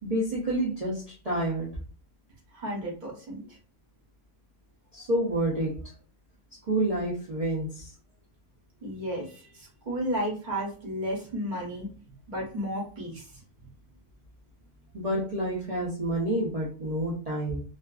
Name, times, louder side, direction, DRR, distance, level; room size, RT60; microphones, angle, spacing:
voice 1, 0.0-1.7 4.9-5.7 6.7-7.9 14.9-17.6, right 1 dB, 60° right, -6 dB, 0.4 m, -28 dB
voice 2, 2.5-3.4 8.8-11.9 12.3-13.2, equal, 35° right, -3 dB, 0.9 m, -33 dB
2.5 x 2.4 x 2.3 m, 0.39 s
omnidirectional pair, 1.6 m